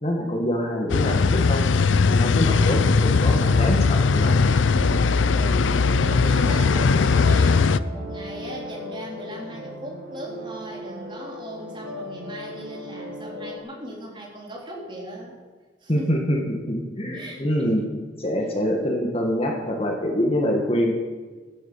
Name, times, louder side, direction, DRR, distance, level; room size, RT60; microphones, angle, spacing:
voice 1, 0.0-4.4 15.9-17.8 18.2-20.9, equal, 30° left, 1 dB, 1.8 m, -25 dB
sound 1, 0.9-7.8, left 4 dB, 90° left, 0.5 m, -19 dB
sound 2, 4.7-13.6, equal, 80° right, 3.6 m, -36 dB
voice 2, 5.0-15.3 15.8-16.2 17.1-18.0, right 1 dB, 25° right, -3 dB, 3.9 m, -38 dB
15.0 x 9.5 x 7.9 m, 1.4 s
head